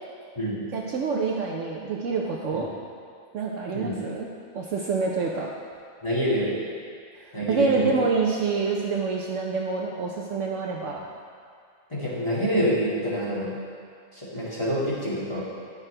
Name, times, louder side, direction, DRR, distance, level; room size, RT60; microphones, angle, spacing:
voice 1, 0.7-2.7 3.3-4.3 4.5-5.5 7.1-11.0, right 4 dB, 65° right, -1 dB, 0.9 m, -27 dB
voice 2, 6.0-6.6 7.3-8.0 11.9-13.5 14.1-15.4, equal, 20° left, -10 dB, 2.0 m, -27 dB
10.5 x 6.1 x 3.3 m, 2.2 s
omnidirectional pair, 1.5 m